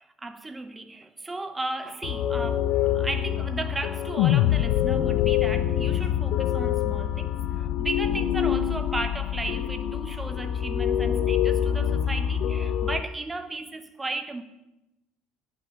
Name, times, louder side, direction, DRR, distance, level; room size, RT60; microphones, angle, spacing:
voice 1, 0.0-14.4, right 2 dB, 15° right, 1.0 m, -35 dB
sound 1, 2.0-13.0, left 10 dB, 60° left, 0.9 m, -26 dB
sound 2, 4.2-8.5, left 14 dB, 80° left, 0.4 m, -27 dB
18.0 x 6.3 x 6.8 m
supercardioid pair, 100°, 0 cm